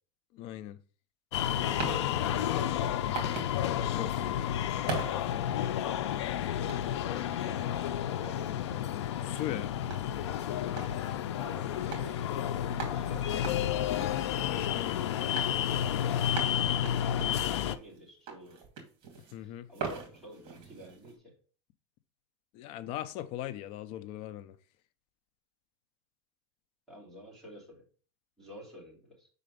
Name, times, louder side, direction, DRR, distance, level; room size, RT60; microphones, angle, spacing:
voice 1, 0.3-0.8 3.9-4.4 5.3-5.5 9.2-9.7 14.4-15.1 19.3-19.7 22.5-24.6, left 12 dB, 40° left, 0.6 m, -39 dB
sound 1, 1.3-17.8, left 10 dB, 85° left, 0.5 m, -31 dB
sound 2, 1.6-3.6 3.9-4.1 4.9-6.2 6.7-7.1 7.6-11.4 11.9-12.0 12.3-12.4 12.8-14.9 15.4-15.6 16.0-16.1 16.4-18.0 18.3-19.4 19.7-21.1, right 5 dB, 40° right, 2.3 m, -42 dB
voice 2, 2.3-2.8 4.2-4.4 7.1-8.6 11.3-13.3 17.1-18.6 19.4-21.3 26.9-27.8 28.4-29.3, equal, ahead, 2.8 m, -50 dB
5.1 x 4.3 x 5.3 m
supercardioid pair, 150°, 14 cm